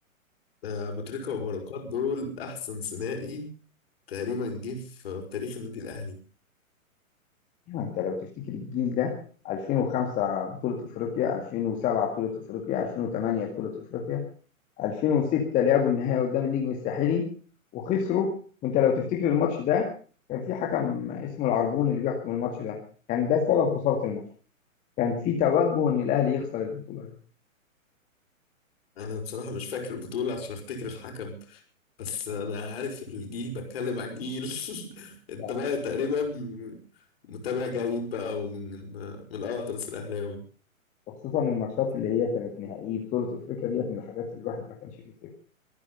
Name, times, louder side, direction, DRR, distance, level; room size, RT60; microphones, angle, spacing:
voice 1, 0.6-3.5 4.1-6.2 28.9-31.6 32.0-36.8 37.2-40.4, left 4 dB, 45° left, 4 dB, 5.0 m, -33 dB
voice 2, 7.7-9.1 9.4-14.2 14.8-17.3 17.7-18.3 18.6-19.9 20.3-22.8 23.1-24.2 25.0-27.1 35.4-35.6 41.1-44.9, left 8 dB, 20° left, 1 dB, 2.1 m, -27 dB
24.0 x 9.7 x 5.4 m, 0.41 s
figure-of-eight pair, 120°, 42 cm